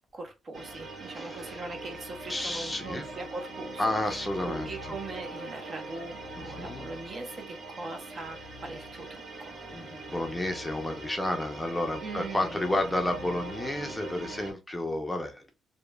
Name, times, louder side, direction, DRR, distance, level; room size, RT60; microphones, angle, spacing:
voice 1, 0.1-4.2 4.4-9.6 12.0-12.8, right 3 dB, 45° right, 0.7 m, -41 dB
sound 1, 0.5-14.5, right 2 dB, 75° right, 1.1 m, -42 dB
voice 2, 1.2-1.6 2.3-3.0 3.8-4.7 6.4-6.9 9.7-15.5, left 1 dB, 10° left, 0.5 m, -31 dB
2.9 x 2.1 x 2.2 m
cardioid pair, 90°, 0 cm